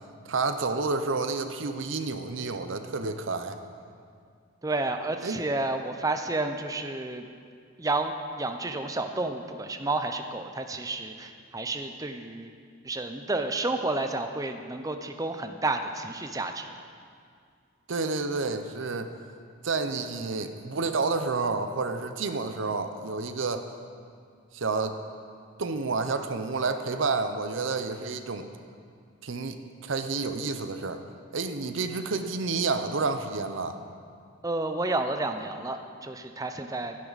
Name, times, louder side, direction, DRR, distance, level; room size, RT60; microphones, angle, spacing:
voice 1, 0.3-3.6 5.2-5.4 17.9-19.1 19.6-23.7 24.5-25.0 25.6-28.5 29.2-31.0 31.3-33.8, right 4 dB, 65° right, 8 dB, 0.7 m, -30 dB
voice 2, 4.6-7.2 7.8-12.5 12.8-16.7 34.4-37.0, right 2 dB, 15° right, 6 dB, 0.6 m, -31 dB
12.5 x 10.5 x 4.1 m, 2.2 s
head